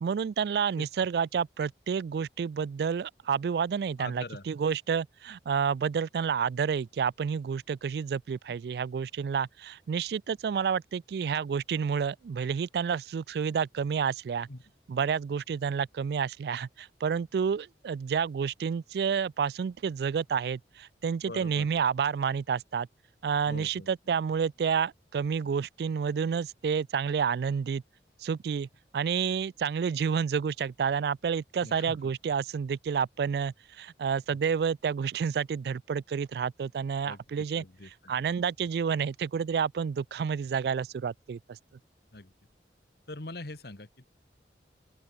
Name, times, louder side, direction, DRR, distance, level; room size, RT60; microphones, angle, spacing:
voice 1, 0.0-14.5 14.9-22.9 23.2-27.8 28.2-28.7 28.9-37.6 38.1-41.6, right 6 dB, 60° right, 0.3 m, -29 dB
voice 2, 4.0-4.5 14.5-14.6 21.3-21.7 23.5-23.9 31.6-32.1 34.3-34.4 37.0-38.1 42.1-42.3 43.1-44.1, left 2 dB, 60° left, 1.7 m, -43 dB
open air
head